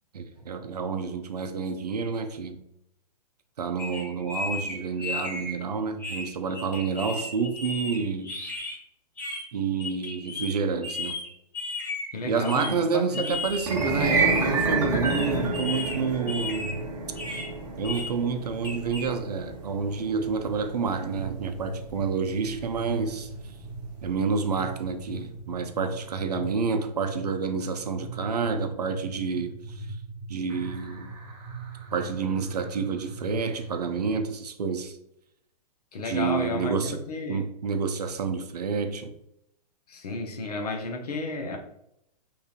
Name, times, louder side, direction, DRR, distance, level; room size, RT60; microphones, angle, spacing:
voice 1, 0.1-2.6 3.6-8.3 9.5-11.2 12.2-16.8 17.8-23.3 24.0-29.9 30.3-31.1 31.9-35.0 36.0-37.0 37.3-39.1, right 5 dB, 70° right, 0.5 m, -29 dB
sound 1, 3.8-5.6 6.0-8.8 9.2-9.4 9.8-10.6 10.8-12.1 12.4-12.7 13.1-13.7 15.0-16.0 16.3-16.8 17.1-17.5 17.8-18.1 18.6-19.1, left 2 dB, 10° left, 0.7 m, -34 dB
voice 2, 12.1-13.4 35.9-37.4 39.9-41.6, left 2 dB, 65° left, 0.8 m, -32 dB
sound 2, 13.6-23.9, right 3 dB, 15° right, 0.9 m, -29 dB
sound 3, 21.0-34.2, right 2 dB, 40° right, 1.0 m, -40 dB
3.7 x 3.2 x 2.4 m
figure-of-eight pair, 115°, 21 cm